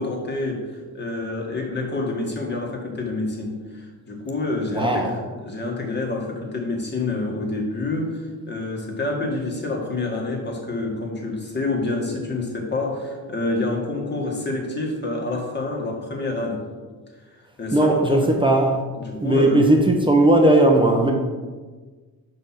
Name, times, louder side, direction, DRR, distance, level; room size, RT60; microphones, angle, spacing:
voice 1, 0.0-16.6 17.3-18.3 18.9-19.7, left 2 dB, 30° left, -1 dB, 1.9 m, -28 dB
voice 2, 4.7-5.1 17.7-18.8 19.2-21.1, right 1 dB, 15° right, 1 dB, 0.9 m, -17 dB
6.3 x 5.2 x 5.8 m, 1.4 s
cardioid pair, 105°, 36 cm